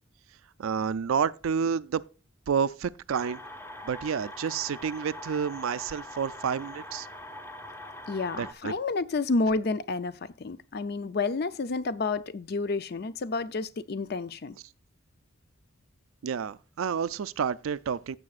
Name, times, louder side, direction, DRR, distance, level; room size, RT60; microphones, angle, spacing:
voice 1, 0.6-2.0 2.5-3.4 3.8-7.1 8.3-8.7 16.2-18.2, right 7 dB, 80° right, 0.4 m, -29 dB
sound 1, 3.1-8.5, left 1 dB, 10° left, 0.7 m, -43 dB
voice 2, 8.1-14.6, left 3 dB, 50° left, 0.5 m, -30 dB
16.0 x 6.9 x 2.4 m
head